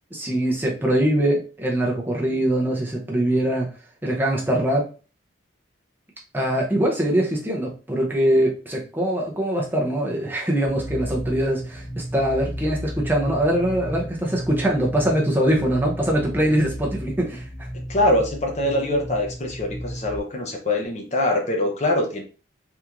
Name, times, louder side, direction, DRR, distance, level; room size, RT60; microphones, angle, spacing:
voice 1, 0.1-3.7 4.0-4.9 6.3-17.5, right 1 dB, 10° right, -1 dB, 0.6 m, -22 dB
sound 1, 10.6-20.2, equal, 55° left, 1.5 m, -34 dB
voice 2, 17.9-22.2, left 1 dB, 35° left, 2 dB, 0.6 m, -23 dB
3.5 x 2.5 x 2.9 m, 0.35 s
head